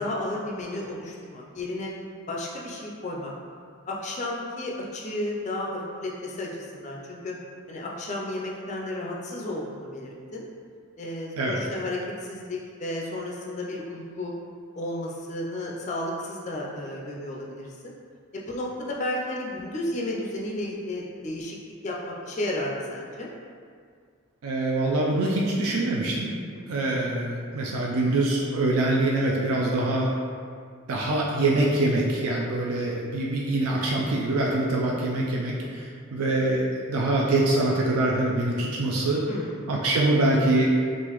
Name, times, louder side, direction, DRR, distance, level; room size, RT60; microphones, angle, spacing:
voice 1, 0.0-1.9 2.3-3.3 3.9-7.3 7.7-10.5 11.0-14.3 14.8-17.9 18.3-21.6 21.8-23.3 26.5-26.6 39.3-39.6, left 1 dB, 30° left, -3 dB, 0.3 m, -33 dB
voice 2, 24.4-26.3 26.7-30.1 30.9-39.2 39.7-40.8, right 2 dB, 80° right, -3 dB, 0.4 m, -24 dB
3.7 x 2.5 x 2.9 m, 2.1 s
head